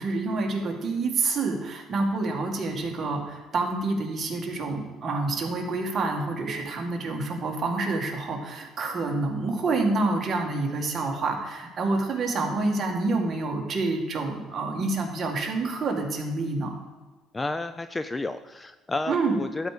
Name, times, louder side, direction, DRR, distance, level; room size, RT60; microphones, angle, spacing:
voice 1, 0.0-16.7 19.1-19.3, right 3 dB, 35° right, 0 dB, 1.9 m, -28 dB
voice 2, 17.3-19.7, left 2 dB, 15° left, 11 dB, 0.4 m, -31 dB
12.0 x 4.8 x 6.7 m, 1.3 s
cardioid pair, 125°, 0 cm